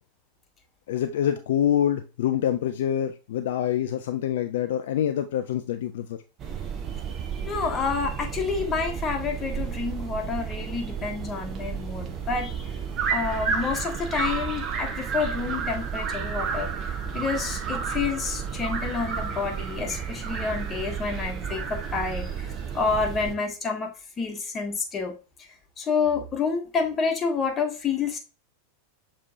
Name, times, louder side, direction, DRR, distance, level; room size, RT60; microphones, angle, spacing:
voice 1, 0.9-6.2, left 10 dB, 55° left, 8 dB, 0.3 m, -26 dB
sound 1, 6.4-23.3, right 6 dB, 30° right, 0.8 m, -31 dB
voice 2, 7.4-12.7 13.1-16.7 17.1-22.5 22.7-23.9 24.2-25.1 25.8-28.2, left 5 dB, 25° left, 4 dB, 1.0 m, -28 dB
6.5 x 3.0 x 2.6 m, 0.31 s
figure-of-eight pair, 90°, 0 cm